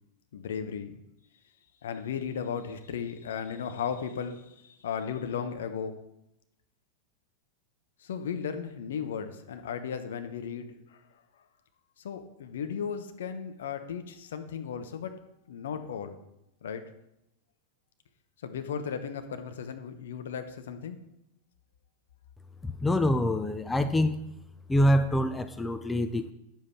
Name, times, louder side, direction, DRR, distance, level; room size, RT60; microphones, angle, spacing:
voice 1, 0.3-1.0 1.8-6.0 8.0-11.0 12.0-15.1 15.5-16.2 16.6-16.8 18.4-21.0, left 7 dB, 60° left, 8 dB, 0.9 m, -35 dB
voice 2, 22.6-24.2 24.7-26.3, left 1 dB, 10° left, 10 dB, 0.5 m, -25 dB
9.4 x 7.4 x 4.4 m, 0.85 s
figure-of-eight pair, 90°, 0 cm